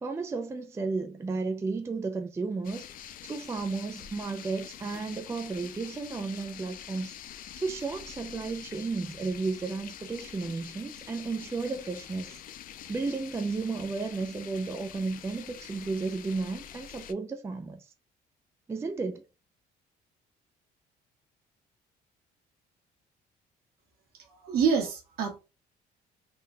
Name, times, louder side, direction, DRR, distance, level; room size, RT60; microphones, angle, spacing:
voice 1, 0.0-7.1 7.5-12.4 12.9-17.9 18.7-19.2, right 4 dB, 15° right, 0.4 m, -33 dB
sound 1, 2.6-17.1, left 10 dB, 55° left, 0.4 m, -46 dB
voice 2, 24.1-25.4, right 6 dB, 65° right, 1.3 m, -27 dB
3.8 x 2.2 x 2.7 m
cardioid pair, 110°, 17 cm